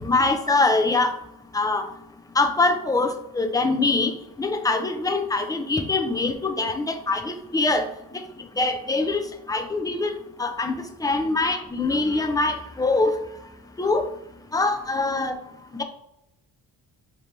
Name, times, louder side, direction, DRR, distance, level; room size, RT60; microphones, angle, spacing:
voice 1, 0.0-1.2 1.5-1.9 2.3-4.1 4.4-8.2 8.6-9.2 9.5-10.1 10.4-13.2 13.8-14.1 14.5-15.3 15.7-15.8, left 3 dB, 10° left, 6 dB, 0.6 m, -23 dB
3.2 x 3.0 x 4.0 m, 0.83 s
supercardioid pair, 65°, 40 cm